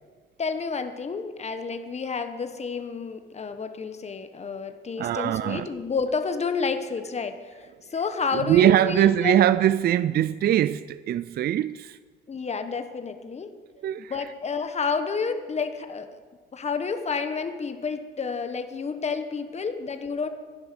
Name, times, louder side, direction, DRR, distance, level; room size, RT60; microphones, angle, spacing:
voice 1, 0.4-9.5 12.3-13.5 14.0-16.1 16.5-20.3, left 5 dB, 35° left, 1.2 m, -30 dB
voice 2, 5.0-5.7 8.3-12.0 13.8-14.1, right 11 dB, 55° right, 0.4 m, -22 dB
12.0 x 10.5 x 6.0 m
cardioid pair, 90°, 20 cm